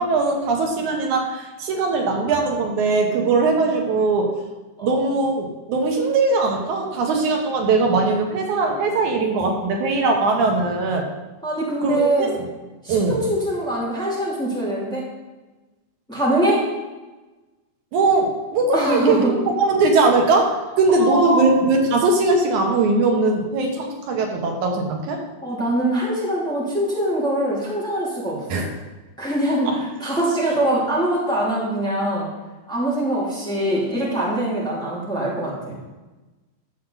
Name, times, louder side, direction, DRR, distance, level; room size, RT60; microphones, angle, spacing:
voice 1, 0.0-4.3 4.8-11.1 11.8-12.4 12.9-13.2 17.9-25.2 28.5-28.7 29.7-29.8, right 3 dB, 85° right, 2 dB, 2.6 m, -20 dB
voice 2, 11.4-12.4 12.8-15.0 16.1-16.7 18.7-19.3 20.9-21.4 25.4-28.6 29.2-32.3 32.7-35.7, right 1 dB, ahead, -6 dB, 2.2 m, -23 dB
11.5 x 7.1 x 3.9 m, 1.2 s
omnidirectional pair, 3.3 m